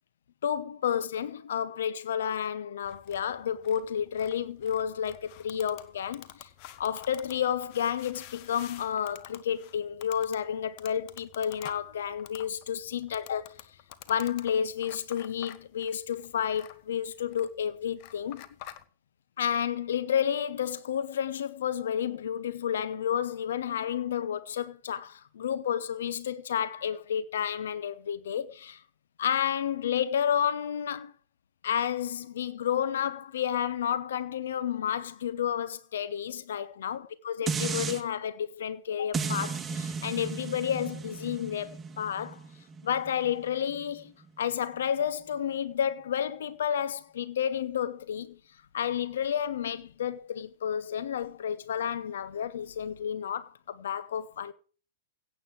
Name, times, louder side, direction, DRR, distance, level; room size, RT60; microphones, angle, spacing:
voice 1, 0.4-6.5 6.8-13.6 14.1-18.5 19.4-28.8 29.2-31.1 31.6-42.4 42.8-44.1 44.4-48.4 48.7-54.5, left 9 dB, 65° left, 1.0 m, -31 dB
sound 1, 2.8-18.8, left 13 dB, 45° left, 1.2 m, -50 dB
sound 2, 37.5-38.0 39.1-44.3 44.7-44.8, right 5 dB, 15° right, 1.3 m, -35 dB
16.5 x 8.2 x 4.7 m
figure-of-eight pair, 100°, 0 cm